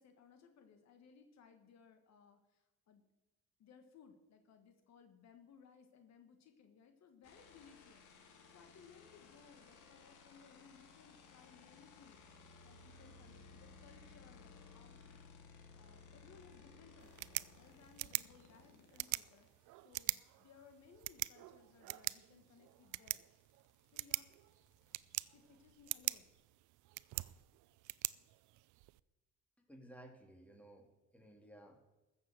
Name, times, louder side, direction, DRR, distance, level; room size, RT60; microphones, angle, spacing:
voice 1, 0.0-3.0 3.6-12.3 12.6-15.2 15.7-23.2 23.9-24.3 25.3-26.2, left 6 dB, 60° left, 7 dB, 1.6 m, -63 dB
sound 1, 7.2-19.5 21.6-21.7 21.9-26.3, left 4 dB, 80° left, 2.3 m, -60 dB
sound 2, 17.0-29.0, right 20 dB, 75° right, 0.5 m, -44 dB
voice 2, 29.6-31.8, right 1 dB, 5° left, 3 dB, 2.5 m, -57 dB
14.0 x 7.2 x 7.6 m, 1.0 s
cardioid pair, 90°, 30 cm